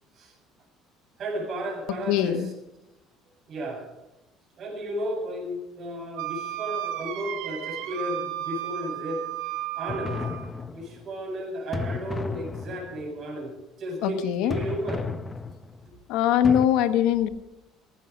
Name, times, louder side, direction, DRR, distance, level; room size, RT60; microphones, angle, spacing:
voice 1, 1.2-2.4 3.5-3.9 4.6-9.2 9.7-10.2 10.7-15.0 15.9-16.0, right 1 dB, 40° right, 0 dB, 7.6 m, -33 dB
voice 2, 2.1-2.5 14.0-14.6 16.1-17.3, left 10 dB, 75° left, 10 dB, 1.1 m, -22 dB
Wind instrument woodwind instrument, 6.2-10.5, right 13 dB, 85° right, 2.7 m, -34 dB
sound 1, 9.9-11.1 11.7-13.1 14.5-15.9 16.4-16.7, left 4 dB, 15° left, 0.7 m, -33 dB
16.5 x 15.5 x 5.3 m, 0.90 s
cardioid pair, 155°, 0 cm